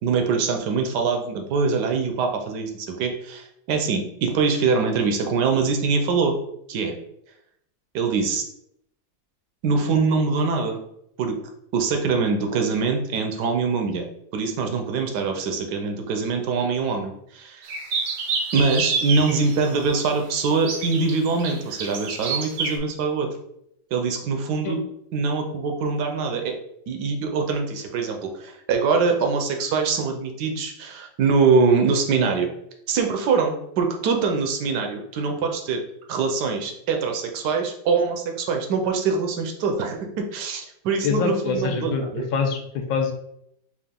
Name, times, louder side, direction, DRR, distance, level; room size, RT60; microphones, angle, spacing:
voice 1, 0.0-6.3 6.7-7.0 7.9-8.4 9.6-10.8 11.2-11.4 11.7-14.1 14.3-17.7 18.5-23.3 23.9-24.8 25.1-26.5 26.9-32.5 32.9-35.8 36.1-42.2, right 4 dB, 70° right, 3 dB, 1.1 m, -23 dB
sound 1, 17.6-19.8 20.5-22.8, right 4 dB, 90° right, 1.6 m, -28 dB
voice 2, 41.0-43.1, left 5 dB, 85° left, 4 dB, 1.4 m, -25 dB
4.9 x 2.4 x 3.6 m, 0.75 s
omnidirectional pair, 2.1 m